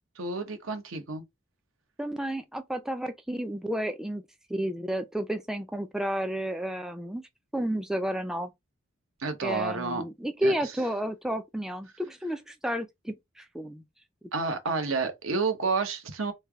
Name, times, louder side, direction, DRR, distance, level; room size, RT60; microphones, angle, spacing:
voice 1, 0.2-1.2 9.2-10.0 10.4-10.5 14.3-16.3, right 4 dB, 80° right, 0.9 m, -30 dB
voice 2, 2.0-4.2 4.5-7.2 7.5-8.5 9.4-13.8, right 1 dB, 5° right, 0.3 m, -31 dB
3.2 x 2.2 x 3.4 m
head